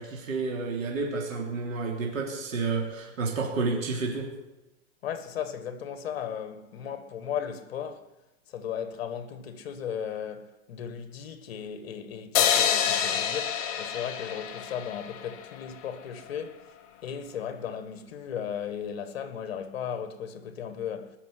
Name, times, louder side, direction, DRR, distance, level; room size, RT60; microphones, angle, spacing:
voice 1, 0.0-4.3, right 4 dB, 90° right, 3.5 m, -30 dB
voice 2, 5.0-8.1 8.5-16.6 17.0-21.2, left 8 dB, 50° left, 1.8 m, -36 dB
sound 1, 12.3-15.7, left 9 dB, 20° left, 1.0 m, -27 dB
18.5 x 6.8 x 9.6 m
supercardioid pair, 170°, 39 cm